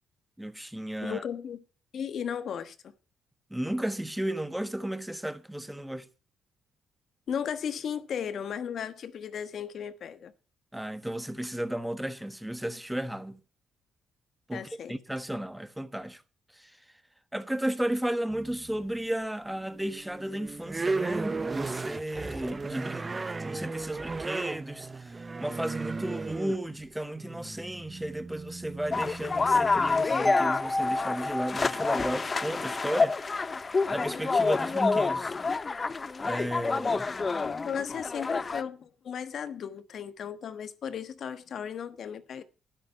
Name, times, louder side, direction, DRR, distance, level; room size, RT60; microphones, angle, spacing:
voice 1, 0.4-1.2 3.5-6.1 10.7-13.4 14.5-16.2 16.5-16.8 17.3-33.4 33.9-35.3 36.2-37.1, right 1 dB, 5° right, 1.3 m, -34 dB
voice 2, 1.0-1.6 1.9-2.7 7.3-10.3 14.5-14.9 37.3-42.4, left 8 dB, 60° left, 1.3 m, -35 dB
sound 1, 18.3-19.0 19.5-30.0, right 3 dB, 25° right, 0.7 m, -36 dB
sound 2, 28.9-38.6, left 4 dB, 30° left, 0.6 m, -28 dB
sound 3, 30.3-34.2, left 1 dB, 10° left, 1.6 m, -33 dB
12.0 x 10.0 x 5.7 m
cardioid pair, 90°, 0 cm